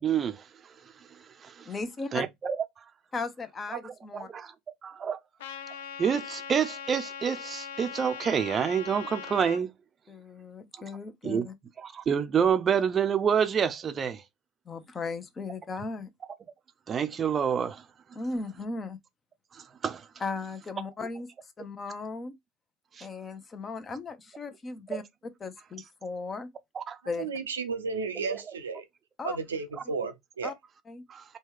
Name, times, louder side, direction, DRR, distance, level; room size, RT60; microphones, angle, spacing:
voice 1, 0.0-0.4 1.4-1.7 2.1-2.6 4.1-4.5 4.8-5.2 6.0-9.7 11.2-11.5 11.8-14.2 16.9-17.8 19.8-20.0 23.0-23.1 24.9-25.0 26.8-27.0 28.3-28.4 31.1-31.2, right 7 dB, 35° right, 0.5 m, -27 dB
voice 2, 1.7-2.2 3.1-4.3 10.1-11.5 14.7-16.1 18.1-19.0 20.2-21.3 21.6-22.3 23.0-25.0 25.4-26.5 27.1-27.3 29.2-29.4 30.4-30.5 30.9-31.0, left 3 dB, 30° left, 0.7 m, -36 dB
Trumpet, 5.4-9.6, left 7 dB, 70° left, 0.4 m, -40 dB
voice 3, 27.2-28.8 29.2-30.5, right 5 dB, 80° right, 0.5 m, -33 dB
3.1 x 2.3 x 3.5 m
figure-of-eight pair, 70°, 0 cm